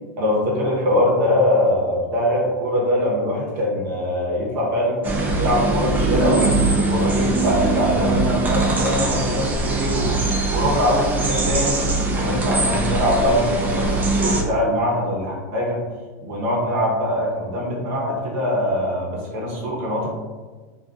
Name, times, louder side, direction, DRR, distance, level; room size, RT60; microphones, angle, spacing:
voice 1, 0.2-5.0 5.4-10.2 10.5-11.8 12.1-15.8 16.2-20.1, left 1 dB, 65° right, -3 dB, 0.9 m, -22 dB
sound 1, 5.0-14.4, right 2 dB, 20° right, 0.5 m, -21 dB
2.4 x 2.3 x 2.5 m, 1.3 s
hypercardioid pair, 115°, 10 cm